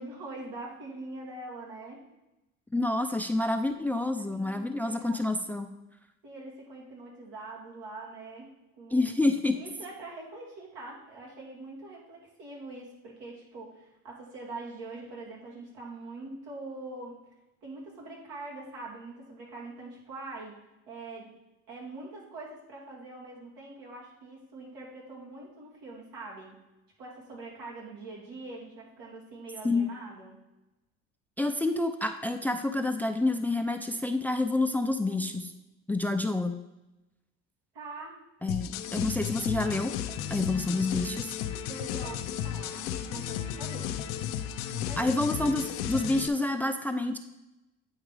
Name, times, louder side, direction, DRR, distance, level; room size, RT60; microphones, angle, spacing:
voice 1, 0.0-2.0 4.1-5.2 6.2-8.5 8.8-9.1 9.5-17.2 17.6-20.6 20.9-21.3 21.7-26.6 27.0-30.4 37.7-38.2 41.7-44.0 44.7-45.2, right 2 dB, 80° right, -3 dB, 2.6 m, -43 dB
voice 2, 2.7-5.7 8.9-9.6 29.6-29.9 31.4-35.5 35.9-36.6 38.4-39.9 40.3-41.3 45.0-47.2, left 2 dB, 5° left, 8 dB, 0.5 m, -28 dB
sound 1, 38.5-46.3, left 10 dB, 80° left, 0.6 m, -34 dB
9.1 x 3.6 x 4.9 m, 0.97 s
supercardioid pair, 80°, 33 cm